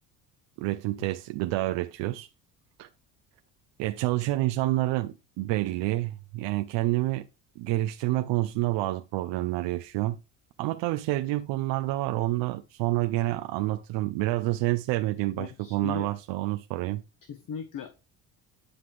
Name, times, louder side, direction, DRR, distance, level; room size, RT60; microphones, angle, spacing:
voice 1, 0.6-2.3 2.8-2.9 3.8-7.2 7.6-10.2 10.6-17.0, right 17 dB, 65° right, 0.8 m, -28 dB
voice 2, 15.4-16.2 17.3-17.9, left 7 dB, 40° left, 1.2 m, -38 dB
9.8 x 5.8 x 3.4 m
hypercardioid pair, 70°, 48 cm